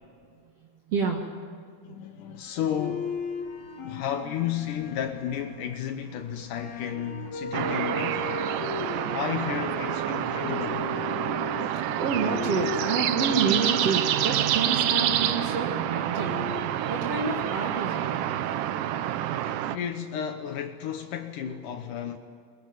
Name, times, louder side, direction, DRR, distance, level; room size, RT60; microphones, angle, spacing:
voice 1, 0.3-2.4 3.6-3.9 9.0-9.1 11.7-16.3 16.9-18.1, right 4 dB, 55° right, 2.4 m, -30 dB
voice 2, 1.8-3.2 3.8-8.3 9.1-10.9 19.5-22.2, left 9 dB, 80° left, 2.6 m, -33 dB
sound 1, 2.8-19.4, left 4 dB, 65° left, 2.7 m, -38 dB
sound 2, 7.5-19.8, right 11 dB, 80° right, 2.3 m, -28 dB
22.0 x 20.5 x 9.3 m
omnidirectional pair, 3.6 m